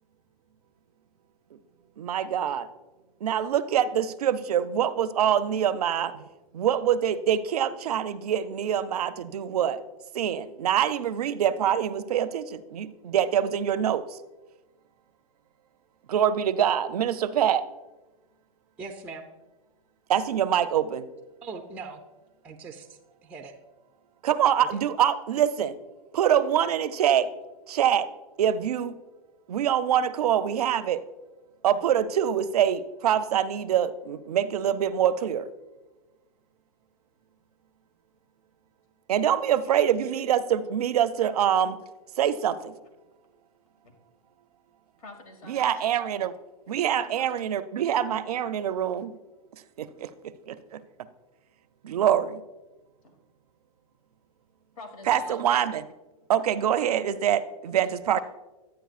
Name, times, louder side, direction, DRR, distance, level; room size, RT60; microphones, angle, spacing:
voice 1, 2.0-2.7 3.2-6.2 6.5-9.8 10.1-14.2 16.1-17.7 20.1-21.1 24.2-25.8 26.1-27.3 27.7-28.1 28.4-28.9 29.5-31.0 31.6-35.5 39.1-41.8 42.2-42.7 45.5-46.3 46.7-49.1 49.8-50.8 51.8-52.4 55.1-55.8 56.3-58.2, right 9 dB, 80° right, 13 dB, 0.5 m, -25 dB
voice 2, 18.8-19.3 21.4-22.0 22.4-23.6 24.7-24.8, right 4 dB, 10° right, 3 dB, 0.4 m, -41 dB
voice 3, 45.0-45.8 47.1-47.3 53.0-53.1 54.8-55.4 57.3-57.4 58.1-58.2, left 4 dB, 70° left, 5 dB, 1.7 m, -45 dB
10.0 x 8.9 x 2.4 m, 1.1 s
hypercardioid pair, 135°, 19 cm